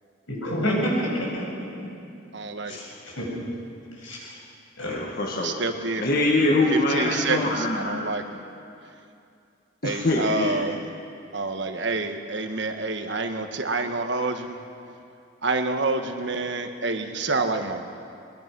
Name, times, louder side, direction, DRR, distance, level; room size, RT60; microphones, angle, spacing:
voice 1, 0.3-1.5 2.7-3.3 4.0-4.4 4.8-5.0, equal, 75° left, -3 dB, 7.5 m, -28 dB
voice 2, 2.3-2.8 5.4-6.0 6.7-7.4 7.8-8.4 9.8-10.8 11.3-14.6 15.4-17.9, right 3 dB, 60° right, 6 dB, 1.4 m, -27 dB
voice 3, 4.8-5.5 6.0-8.1 9.8-10.6, left 2 dB, 45° left, -2 dB, 1.8 m, -24 dB
22.5 x 22.5 x 6.2 m, 2.5 s
head